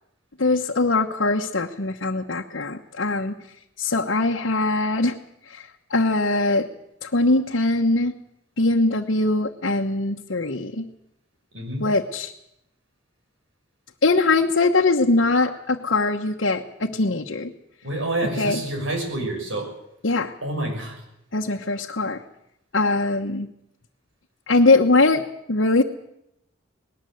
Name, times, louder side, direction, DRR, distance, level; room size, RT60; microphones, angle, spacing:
voice 1, 0.4-3.3 3.8-5.2 5.5-6.7 7.0-8.1 8.6-10.9 11.8-12.3 14.0-17.5 18.4-18.6 20.0-20.4 21.3-22.2 22.7-23.5 24.5-25.2 25.5-25.8, left 2 dB, 65° left, 1 dB, 1.2 m, -21 dB
voice 2, 11.5-11.9 17.8-19.7 20.4-21.0, right 1 dB, 80° right, 3 dB, 6.3 m, -28 dB
19.5 x 18.5 x 7.9 m, 0.80 s
head